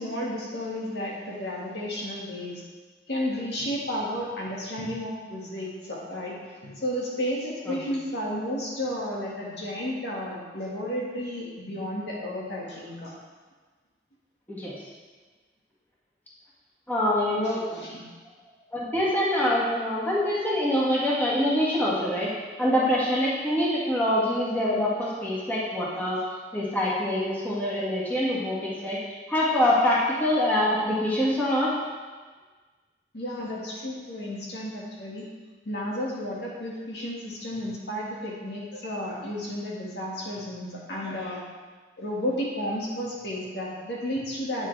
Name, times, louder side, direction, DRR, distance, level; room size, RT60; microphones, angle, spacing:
voice 1, 0.0-2.6 3.1-13.1 17.4-18.0 33.1-35.3 35.7-41.4 42.0-44.7, equal, 70° left, -4 dB, 1.9 m, -32 dB
voice 2, 16.9-17.8 18.7-22.3 22.6-26.2 26.5-29.0 29.3-31.7, left 1 dB, 10° left, -7 dB, 1.7 m, -25 dB
9.2 x 7.2 x 3.3 m, 1.4 s
head